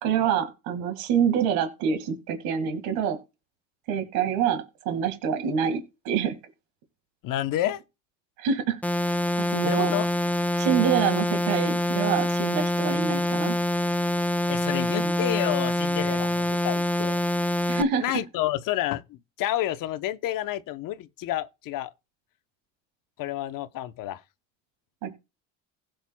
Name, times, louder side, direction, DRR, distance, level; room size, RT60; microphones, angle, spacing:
voice 1, 0.0-3.2 3.9-6.4 8.4-8.8 9.4-9.9 10.6-13.6 15.0-15.2 17.7-18.0 25.0-25.2, right 7 dB, 90° right, 2.0 m, -26 dB
voice 2, 7.2-7.8 9.6-10.1 14.5-17.2 18.0-21.9 23.2-24.2, left 13 dB, 70° left, 0.9 m, -29 dB
sound 1, 8.8-17.8, left 1 dB, 5° left, 0.5 m, -25 dB
16.5 x 7.8 x 2.3 m
supercardioid pair, 90°, 34 cm